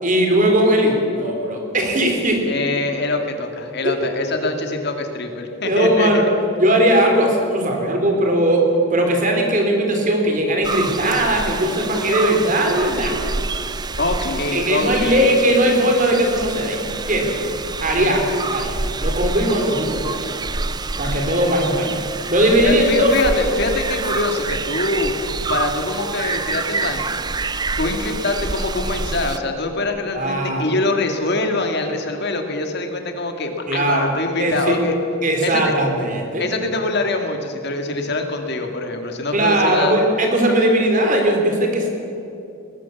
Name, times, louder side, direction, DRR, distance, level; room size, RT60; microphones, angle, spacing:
voice 1, 0.0-2.5 3.8-4.0 5.6-6.2 6.6-13.2 14.5-16.8 17.1-17.3 17.8-18.2 18.5-20.3 21.0-22.0 22.3-23.1 30.1-30.8 33.7-34.1 34.4-34.8 35.2-36.4 39.3-41.9, right 1 dB, 35° right, 2 dB, 3.9 m, -18 dB
voice 2, 2.5-6.3 14.0-15.3 17.9-18.2 22.6-25.1 25.5-27.2 27.8-35.0 35.4-35.7 36.4-39.9, left 2 dB, 50° left, 4 dB, 2.3 m, -24 dB
sound 1, 10.6-29.4, right 3 dB, 20° right, 0.5 m, -27 dB
21.0 x 20.0 x 7.2 m, 2.8 s
head